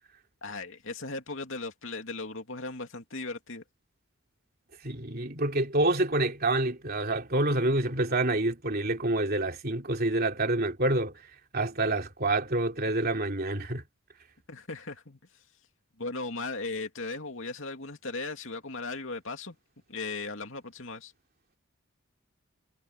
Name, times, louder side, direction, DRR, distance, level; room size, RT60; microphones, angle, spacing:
voice 1, 0.4-3.6 14.5-15.2 16.0-19.6 19.9-21.1, left 3 dB, 60° left, 2.7 m, -37 dB
voice 2, 4.8-11.1 11.5-13.8, right 2 dB, 45° right, 3.2 m, -27 dB
head